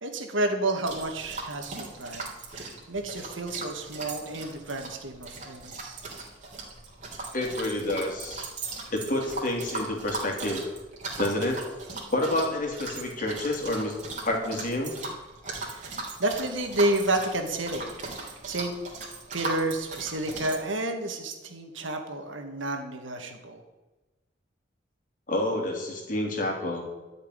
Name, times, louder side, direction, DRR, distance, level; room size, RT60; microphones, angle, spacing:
voice 1, 0.0-2.3 2.5-6.0 15.6-18.8 19.3-23.6, right 2 dB, 85° right, 4 dB, 2.2 m, -30 dB
sound 1, 0.8-20.6, right 3 dB, 40° right, 3.2 m, -39 dB
voice 2, 7.3-8.5 8.9-10.6 11.2-11.6 12.1-14.0 14.2-15.0 25.3-26.8, left 1 dB, 45° left, 0 dB, 3.3 m, -28 dB
13.0 x 6.7 x 10.0 m, 1.1 s
head